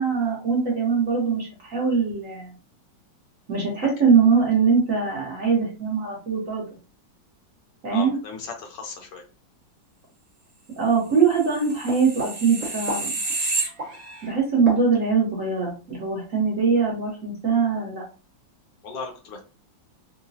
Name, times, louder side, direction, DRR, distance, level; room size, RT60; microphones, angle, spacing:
voice 1, 0.0-2.5 3.5-6.6 7.8-8.2 10.8-13.1 14.2-18.0, right 5 dB, 50° right, -2 dB, 1.2 m, -22 dB
voice 2, 7.9-9.2 18.8-19.4, left 5 dB, 70° left, 2 dB, 1.3 m, -36 dB
sound 1, 11.4-14.3 14.7-14.8, right 3 dB, 30° right, 0.8 m, -29 dB
3.8 x 2.2 x 2.6 m, 0.35 s
omnidirectional pair, 2.1 m